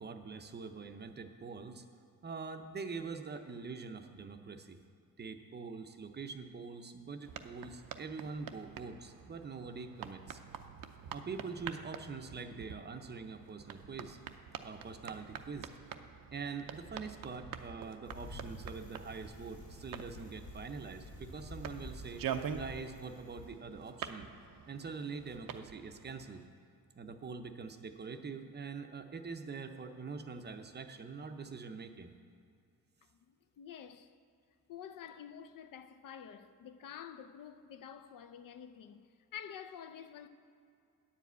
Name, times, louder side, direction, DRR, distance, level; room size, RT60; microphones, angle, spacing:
voice 1, 0.0-1.8 2.2-4.8 5.2-10.4 11.1-14.2 14.6-15.7 16.3-24.3 24.7-26.5 27.0-32.1, right 4 dB, 30° right, 0.6 m, -44 dB
sound 1, 7.2-26.5, right 8 dB, 70° right, 0.6 m, -46 dB
Bicycle, 18.0-23.5, left 2 dB, 85° left, 1.8 m, -50 dB
voice 2, 33.3-34.1 34.7-40.3, left 8 dB, 65° left, 0.6 m, -49 dB
9.9 x 5.0 x 8.1 m
cardioid pair, 125°, 35 cm